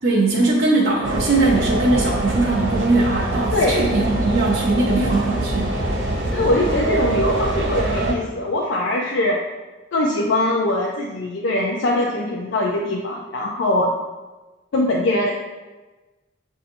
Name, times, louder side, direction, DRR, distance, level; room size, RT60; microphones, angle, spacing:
voice 1, 0.0-5.7, right 2 dB, 55° right, -5 dB, 0.6 m, -20 dB
sound 1, 1.0-8.1, right 2 dB, 75° right, 1.2 m, -24 dB
voice 2, 3.5-3.8 6.3-9.4 9.9-13.9 14.7-15.3, left 1 dB, 80° left, -1 dB, 0.5 m, -21 dB
7.7 x 2.7 x 2.6 m, 1.2 s
head